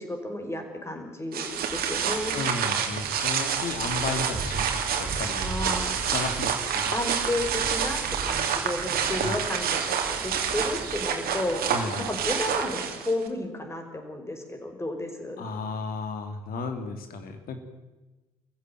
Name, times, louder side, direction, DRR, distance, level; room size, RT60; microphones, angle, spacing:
voice 1, 0.0-2.4 5.4-6.0 6.9-11.6 12.0-15.4, left 1 dB, 15° left, 4 dB, 5.2 m, -32 dB
sound 1, 1.3-13.3, right 7 dB, 55° right, 2.9 m, -28 dB
voice 2, 2.3-4.7 5.0-5.5 6.1-7.0 9.2-9.4 11.7-12.1 15.4-17.6, left 4 dB, 55° left, 6 dB, 2.8 m, -33 dB
24.5 x 15.0 x 9.3 m, 1.1 s
figure-of-eight pair, 50°, 18 cm